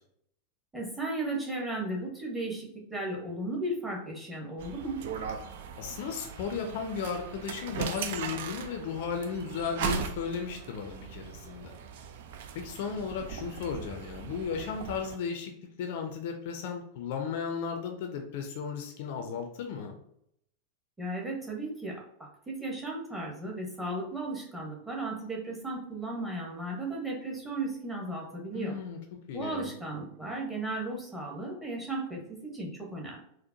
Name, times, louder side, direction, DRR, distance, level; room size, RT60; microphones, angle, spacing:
voice 1, 0.7-5.0 21.0-28.8 29.3-33.2, right 2 dB, 10° right, -2 dB, 1.0 m, -35 dB
sound 1, 4.6-15.2, right 7 dB, 55° right, 0.3 m, -39 dB
voice 2, 5.8-11.7 12.5-15.5 15.8-20.0 28.5-29.7, left 6 dB, 50° left, 4 dB, 0.5 m, -35 dB
4.4 x 2.1 x 2.6 m, 0.72 s
figure-of-eight pair, 90°, 0 cm